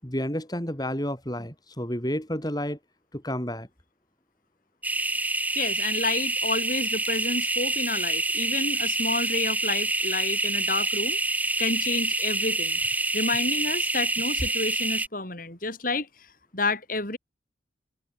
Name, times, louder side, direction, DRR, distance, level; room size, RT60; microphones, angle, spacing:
voice 1, 0.0-2.8 3.1-3.7, equal, 20° left, 5.8 m, -30 dB
sound 1, 4.8-15.1, right 2 dB, 10° right, 3.3 m, -27 dB
voice 2, 5.5-11.2 11.6-12.8 13.1-16.1 16.5-17.2, left 3 dB, 45° left, 6.6 m, -30 dB
head